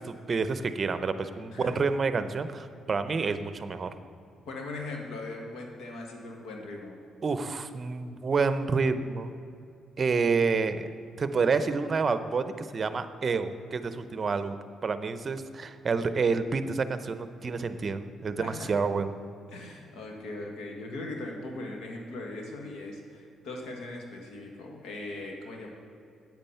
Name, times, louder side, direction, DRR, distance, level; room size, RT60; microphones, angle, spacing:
voice 1, 0.0-3.9 7.2-9.3 10.0-10.9 11.2-19.1, right 4 dB, 40° right, 11 dB, 0.7 m, -28 dB
voice 2, 4.5-7.0 18.4-18.7 19.5-25.7, left 2 dB, 85° left, 1 dB, 1.8 m, -39 dB
8.9 x 8.8 x 5.7 m, 2.5 s
cardioid pair, 90°, 0 cm